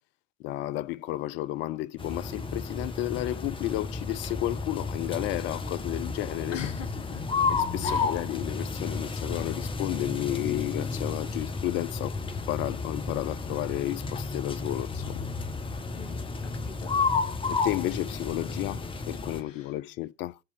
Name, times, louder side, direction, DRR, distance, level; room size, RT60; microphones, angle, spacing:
voice 1, 0.4-6.6 7.5-12.2 12.5-15.3 17.5-20.4, left 15 dB, 30° left, 0.5 m, -32 dB
sound 1, 2.0-19.4, left 4 dB, 15° left, 1.0 m, -32 dB
voice 2, 6.5-7.2 7.8-8.2 15.9-16.3 16.5-17.0 19.4-19.7, left 7 dB, 70° left, 1.2 m, -41 dB
7.9 x 4.5 x 7.0 m
figure-of-eight pair, 75°, 39 cm